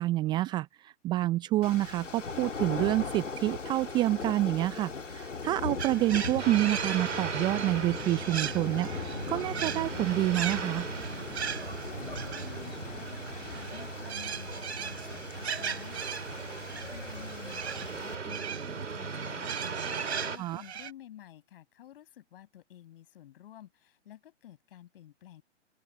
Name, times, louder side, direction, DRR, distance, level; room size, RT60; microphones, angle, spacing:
voice 1, 0.0-10.9 20.4-20.6, right 15 dB, 10° right, 0.5 m, -28 dB
sound 1, 1.6-18.2, left 4 dB, 85° left, 2.4 m, -40 dB
sound 2, 5.8-20.9, right 8 dB, 65° right, 5.5 m, -39 dB
sound 3, 6.4-20.4, right 4 dB, 85° right, 2.4 m, -38 dB
voice 2, 11.8-25.4, left 12 dB, 50° left, 7.7 m, -51 dB
open air
figure-of-eight pair, 125°, 36 cm